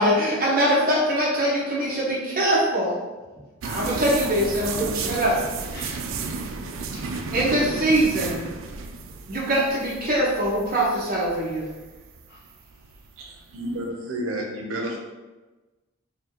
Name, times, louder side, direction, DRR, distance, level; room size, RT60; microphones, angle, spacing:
voice 1, 0.0-3.0 3.6-5.3 7.3-8.4 9.3-11.7, right 1 dB, 45° right, -5 dB, 1.1 m, -22 dB
sound 1, 3.6-13.8, right 4 dB, 70° right, 0.4 m, -34 dB
voice 2, 4.2-4.7 5.7-6.0 6.9-7.3 12.3-12.4, equal, 50° left, -7 dB, 1.4 m, -41 dB
voice 3, 13.2-15.0, right 1 dB, 90° right, 0 dB, 0.7 m, -31 dB
4.4 x 2.7 x 2.8 m, 1.2 s
head